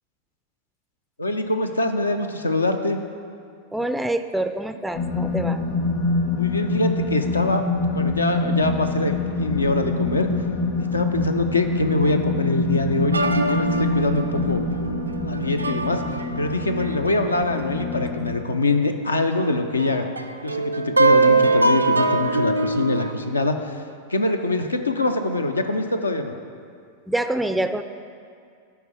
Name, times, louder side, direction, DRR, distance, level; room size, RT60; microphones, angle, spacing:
voice 1, 1.2-3.0 6.3-7.7 7.9-10.3 10.8-14.6 15.1-16.0 16.4-20.1 20.4-23.8 24.1-26.3, left 2 dB, 80° left, 7 dB, 0.6 m, -24 dB
voice 2, 3.7-5.6 27.1-27.8, right 1 dB, 5° right, 9 dB, 0.3 m, -26 dB
sound 1, 4.9-18.4, left 3 dB, 50° left, 1.4 m, -25 dB
sound 2, 13.1-18.3 18.7-18.8 19.3-23.1, right 3 dB, 80° right, 0.4 m, -23 dB
12.0 x 4.5 x 4.9 m, 2.3 s
figure-of-eight pair, 90°, 0 cm